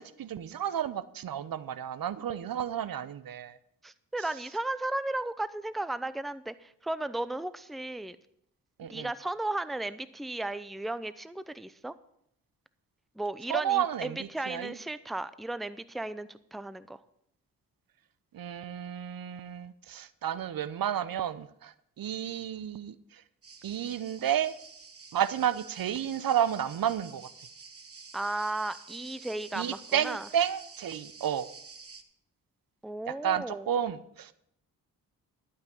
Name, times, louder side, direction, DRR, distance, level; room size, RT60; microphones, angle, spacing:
voice 1, 0.0-3.6 8.8-9.1 13.5-14.7 18.3-22.9 23.6-24.5 25.1-27.3 29.5-31.5 33.1-34.3, right 9 dB, 60° right, 16 dB, 0.8 m, -31 dB
voice 2, 3.8-8.2 8.9-11.9 13.2-17.0 28.1-30.3 32.8-33.7, right 2 dB, ahead, 14 dB, 0.6 m, -35 dB
sound 1, 23.4-32.0, right 4 dB, 35° right, 1.3 m, -50 dB
12.0 x 5.7 x 8.5 m, 0.73 s
supercardioid pair, 50°, 39 cm